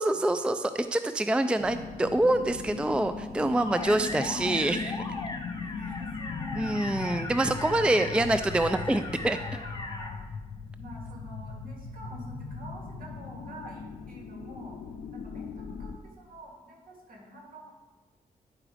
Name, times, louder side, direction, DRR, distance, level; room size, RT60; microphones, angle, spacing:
voice 1, 0.0-5.0 6.6-9.4, right 1 dB, 5° right, 10 dB, 0.3 m, -26 dB
sound 1, 1.6-16.0, left 5 dB, 85° left, 0.5 m, -39 dB
sound 2, 3.6-10.1, left 2 dB, 25° left, 0.9 m, -39 dB
voice 2, 5.5-6.9 9.3-10.2 10.8-14.8 15.1-17.7, right 1 dB, 60° right, -1 dB, 2.3 m, -46 dB
9.7 x 4.8 x 4.9 m, 1.2 s
cardioid pair, 65°, 16 cm